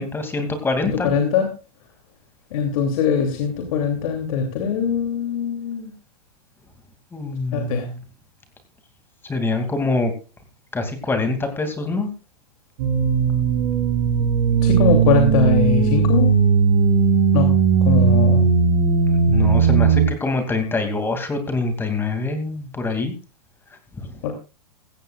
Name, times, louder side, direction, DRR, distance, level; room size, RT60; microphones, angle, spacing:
voice 1, 0.0-1.2 7.1-8.0 9.3-10.1 10.7-12.1 19.3-23.1 24.0-24.1, left 3 dB, 10° left, 6 dB, 2.5 m, -24 dB
voice 2, 1.0-1.5 2.5-5.9 7.5-7.8 14.6-16.3 17.3-17.5 17.8-18.4 24.2-24.3, left 6 dB, 60° left, 3 dB, 2.8 m, -21 dB
sound 1, 12.8-20.1, right 6 dB, 55° right, 5.2 m, -17 dB
15.5 x 15.5 x 2.4 m, 0.32 s
supercardioid pair, 145°, 20 cm